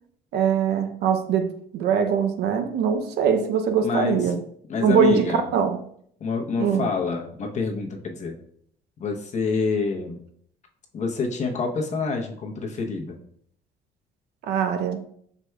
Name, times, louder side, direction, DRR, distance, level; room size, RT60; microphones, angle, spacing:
voice 1, 0.3-4.4 4.8-5.8 6.6-6.9 14.5-15.0, right 7 dB, 75° right, 0.6 m, -22 dB
voice 2, 3.8-4.3 4.7-5.5 6.2-8.3 9.0-10.2 10.9-13.2, left 4 dB, 45° left, 0.9 m, -27 dB
5.0 x 4.6 x 2.3 m
cardioid pair, 110°, 17 cm